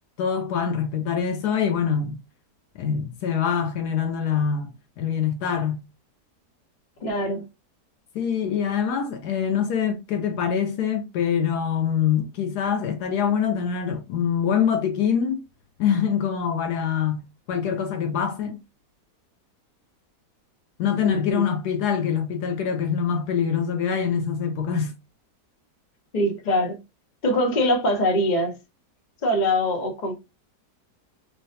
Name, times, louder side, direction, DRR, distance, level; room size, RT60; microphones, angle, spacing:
voice 1, 0.2-2.2 2.8-4.7 5.0-5.8 8.1-15.4 15.8-17.2 17.5-18.6 20.8-24.9, left 7 dB, 75° left, 1.1 m, -24 dB
voice 2, 7.0-7.4 21.0-21.4 26.1-26.8 27.2-28.6 29.2-30.2, left 1 dB, 35° left, 0.8 m, -23 dB
3.8 x 2.2 x 2.7 m
omnidirectional pair, 1.8 m